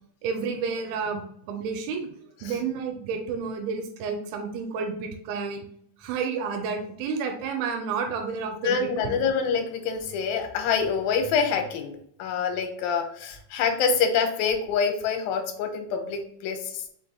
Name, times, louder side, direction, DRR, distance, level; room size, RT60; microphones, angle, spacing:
voice 1, 0.2-1.2 1.5-2.1 2.4-5.6 6.0-9.2, right 5 dB, 90° right, 4 dB, 2.5 m, -30 dB
voice 2, 8.6-11.9 12.2-16.9, left 6 dB, 80° left, 5 dB, 2.4 m, -26 dB
5.4 x 4.0 x 2.2 m, 0.66 s
omnidirectional pair, 4.3 m